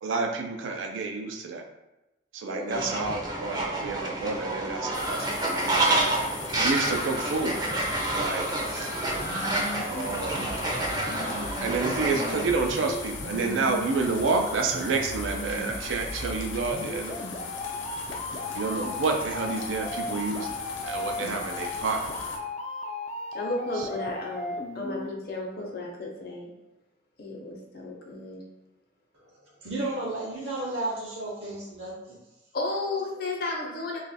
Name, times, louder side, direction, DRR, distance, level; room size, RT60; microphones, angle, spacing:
voice 1, 0.0-1.6 2.3-6.0 6.5-8.9 9.9-10.5 11.6-17.2 18.5-20.5 20.8-22.0 23.8-23.9, right 4 dB, 90° right, 3 dB, 0.5 m, -29 dB
voice 2, 2.5-2.9 23.3-26.5 27.2-28.4 32.5-34.0, left 2 dB, 50° left, -1 dB, 0.8 m, -33 dB
Fowl, 2.7-12.5, right 2 dB, 20° right, 0.5 m, -29 dB
sound 1, 4.9-22.4, left 4 dB, 80° left, 0.6 m, -39 dB
sound 2, 9.1-25.1, left 2 dB, 35° left, 0.3 m, -37 dB
voice 3, 29.6-31.9, right 2 dB, 65° right, -5 dB, 0.8 m, -32 dB
3.0 x 2.4 x 4.1 m, 0.98 s
head